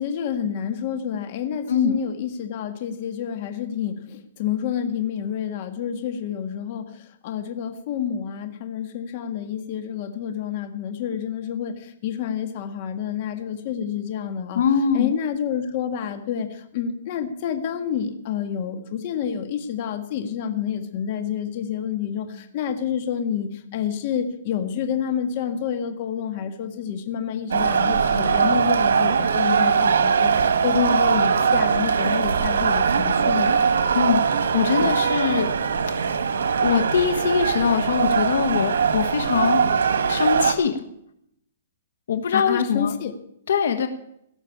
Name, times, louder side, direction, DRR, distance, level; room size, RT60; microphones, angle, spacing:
voice 1, 0.0-14.6 14.9-33.6 42.3-43.1, left 8 dB, 40° left, 7 dB, 1.7 m, -28 dB
voice 2, 1.7-2.0 14.5-15.1 33.9-35.5 35.9-36.1 36.6-39.6 40.0-40.8 42.1-42.9 43.5-43.9, left 7 dB, 75° left, 8 dB, 1.4 m, -22 dB
sound 1, 27.5-40.5, right 6 dB, 85° right, 1.5 m, -21 dB
17.0 x 6.5 x 8.7 m, 0.74 s
hypercardioid pair, 155°, 0 cm